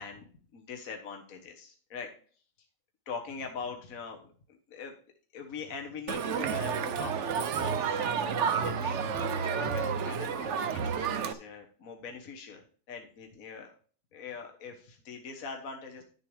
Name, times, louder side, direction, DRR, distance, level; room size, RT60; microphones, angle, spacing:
voice 1, 0.0-2.1 3.1-4.9 5.3-13.7 14.1-16.0, left 5 dB, 55° left, 2 dB, 1.6 m, -43 dB
Crowd, 6.1-11.3, right 6 dB, 55° right, 0.9 m, -30 dB
11.0 x 7.0 x 3.3 m, 0.43 s
omnidirectional pair, 1.9 m